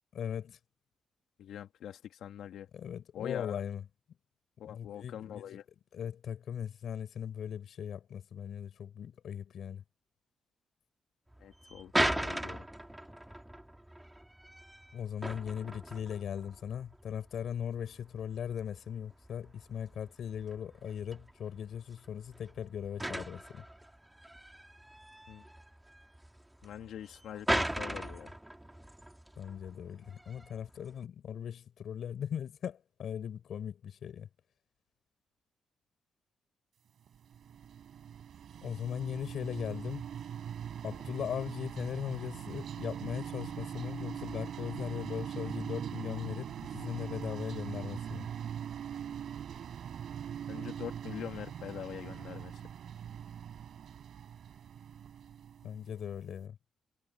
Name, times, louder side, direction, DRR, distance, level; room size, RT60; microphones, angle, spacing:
voice 1, 0.1-0.6 2.7-3.8 4.7-5.6 5.9-9.8 14.9-23.7 29.4-34.3 38.6-40.0 40.8-48.3 55.6-56.6, left 8 dB, 55° left, 5.2 m, -39 dB
voice 2, 1.4-2.7 3.1-3.6 4.6-5.6 11.4-12.6 25.3-25.4 26.6-28.3 50.5-52.6, left 10 dB, 85° left, 2.6 m, -44 dB
sound 1, 11.3-31.0, right 1 dB, 5° right, 2.2 m, -39 dB
sound 2, 37.1-56.1, right 9 dB, 55° right, 7.4 m, -42 dB
wide cardioid pair, 175°, 0 cm